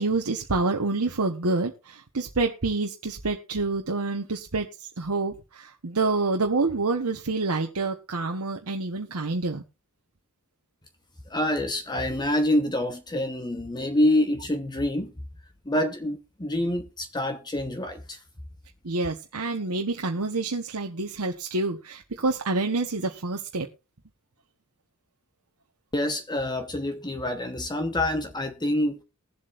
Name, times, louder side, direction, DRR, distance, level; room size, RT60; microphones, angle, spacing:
voice 1, 0.0-4.7 5.0-9.6 18.8-23.7, right 3 dB, 75° right, 1.2 m, -27 dB
voice 2, 11.3-15.1 15.6-18.2 25.9-29.0, left 1 dB, 20° left, 1.1 m, -26 dB
21.0 x 7.8 x 2.5 m
head